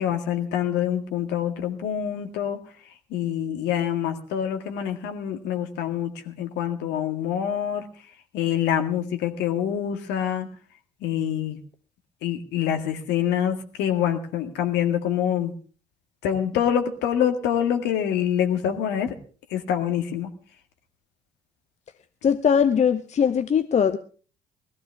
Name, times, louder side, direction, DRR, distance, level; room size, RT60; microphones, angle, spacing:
voice 1, 0.0-8.1 8.3-10.5 11.0-11.6 12.2-15.5 16.2-19.1 19.5-20.3, left 9 dB, 60° left, 6 dB, 1.9 m, -26 dB
voice 2, 22.2-24.0, left 7 dB, 35° left, 11 dB, 0.8 m, -20 dB
20.5 x 14.0 x 3.5 m, 0.41 s
figure-of-eight pair, 45°, 20 cm